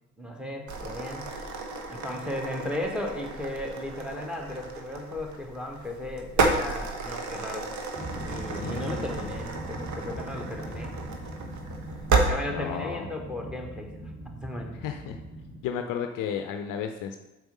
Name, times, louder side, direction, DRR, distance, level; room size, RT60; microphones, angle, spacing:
voice 1, 0.2-1.6 1.9-7.7 8.2-10.9 12.2-13.9 14.4-14.8, left 1 dB, ahead, 2 dB, 1.5 m, -36 dB
sound 1, 0.7-12.3, right 3 dB, 45° right, 1.3 m, -32 dB
sound 2, 7.9-15.6, right 1 dB, 20° right, 2.0 m, -40 dB
voice 2, 8.6-9.3 12.5-13.2 14.8-15.2 15.6-17.2, left 8 dB, 50° left, 6 dB, 0.7 m, -33 dB
7.9 x 4.7 x 5.3 m, 1.0 s
figure-of-eight pair, 50°, 41 cm